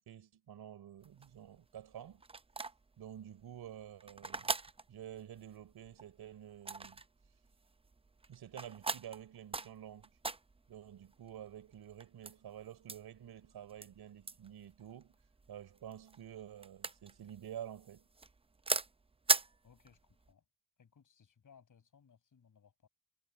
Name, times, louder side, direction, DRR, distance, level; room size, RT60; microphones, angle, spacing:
voice 1, 0.0-2.2 3.0-4.5 4.9-7.0 8.3-10.1 10.7-15.2 15.5-18.1, right 10 dB, 70° right, 4.3 m, -50 dB
sound 1, 1.0-20.3, right 3 dB, 15° right, 0.6 m, -41 dB
voice 2, 19.6-20.4 20.8-22.9, left 7 dB, 50° left, 6.8 m, -64 dB
cardioid pair, 70°, 39 cm